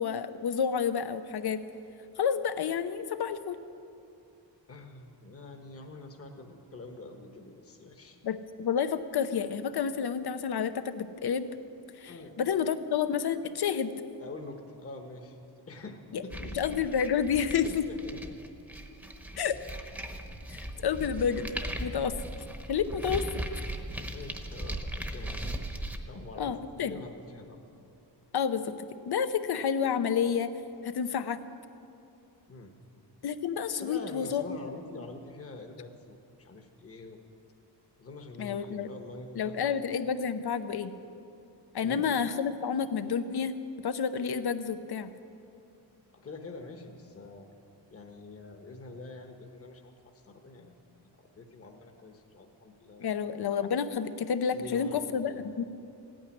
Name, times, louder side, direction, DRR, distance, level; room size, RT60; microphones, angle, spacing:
voice 1, 0.0-1.6 2.2-3.6 8.2-11.5 12.0-13.9 16.1-16.2 16.5-17.9 19.4-19.5 20.5-22.1 22.7-23.4 26.4-27.0 28.3-30.5 30.8-31.4 33.2-34.6 38.4-38.9 39.3-40.9 41.7-43.6 43.8-45.1 53.0-55.6, left 7 dB, 65° left, 11 dB, 0.8 m, -30 dB
voice 2, 4.7-8.2 12.0-12.4 14.2-15.4 15.7-16.8 17.6-18.4 24.1-25.5 26.0-27.6 32.5-32.7 33.8-37.2 38.0-39.8 41.8-42.0 46.1-47.5 47.9-50.7 51.2-53.1 54.5-55.4, left 3 dB, 35° left, 3 dB, 1.2 m, -45 dB
sound 1, 16.3-26.0, right 1 dB, 5° right, 1.0 m, -38 dB
15.5 x 9.1 x 9.9 m, 2.6 s
wide cardioid pair, 155°, 42 cm